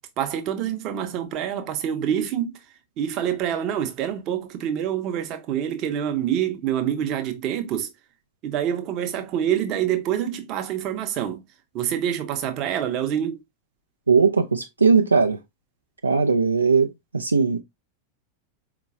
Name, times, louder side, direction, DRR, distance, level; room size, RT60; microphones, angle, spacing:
voice 1, 0.2-2.5 3.0-7.9 8.4-11.4 11.7-13.4, right 10 dB, 40° right, 0.8 m, -26 dB
voice 2, 14.1-15.4 16.0-17.6, right 5 dB, 80° right, 0.4 m, -19 dB
4.5 x 3.0 x 2.6 m
figure-of-eight pair, 90°, 0 cm